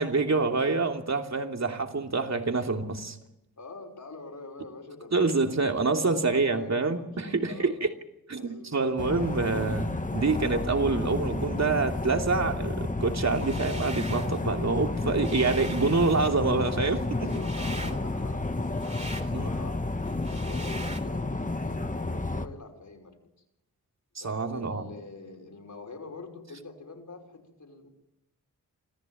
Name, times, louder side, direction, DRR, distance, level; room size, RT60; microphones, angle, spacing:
voice 1, 0.0-3.2 5.1-7.9 8.3-17.4 19.3-19.5 24.1-24.8, right 3 dB, 50° right, 4 dB, 2.9 m, -27 dB
voice 2, 3.6-7.1 7.4-7.8 8.4-9.0 17.2-19.9 20.3-23.2 24.2-27.9, left 3 dB, 55° left, 2 dB, 5.7 m, -45 dB
sound 1, 9.0-22.5, left 2 dB, 20° left, 1.6 m, -31 dB
sound 2, 13.2-14.4 14.8-21.0, right 1 dB, 20° right, 3.5 m, -42 dB
26.0 x 14.5 x 9.2 m, 0.91 s
cardioid pair, 55°, 35 cm